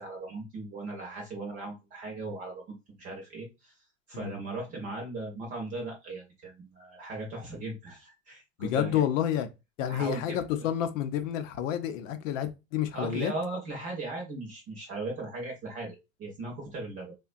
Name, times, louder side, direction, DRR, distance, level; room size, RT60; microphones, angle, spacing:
voice 1, 0.0-3.7 4.1-9.0 9.9-10.4 12.9-17.1, right 2 dB, 20° right, 0.5 m, -38 dB
voice 2, 8.6-9.5 9.8-13.3, left 10 dB, 90° left, 0.6 m, -29 dB
3.5 x 2.2 x 2.4 m
supercardioid pair, 175°, 37 cm